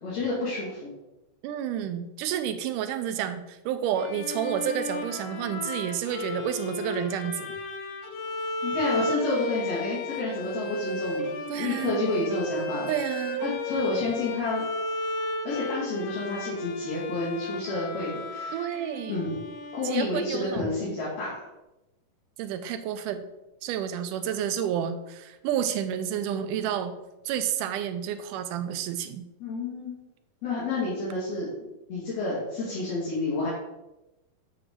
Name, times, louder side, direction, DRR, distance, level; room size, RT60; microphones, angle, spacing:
voice 1, 0.0-0.9 8.6-12.9 13.4-14.6 15.4-18.6 19.1-19.4 19.7-21.4 29.4-29.9 30.4-31.5 31.9-33.5, left 2 dB, 55° left, -7 dB, 2.9 m, -29 dB
voice 2, 1.4-7.5 11.5-12.1 12.9-13.5 18.5-19.2 19.8-20.9 22.4-23.3 23.6-27.0 27.3-29.3, right 9 dB, 90° right, 9 dB, 2.1 m, -30 dB
Bowed string instrument, 4.0-20.5, left 2 dB, 75° left, 1.4 m, -34 dB
8.0 x 5.0 x 3.7 m, 0.97 s
omnidirectional pair, 3.6 m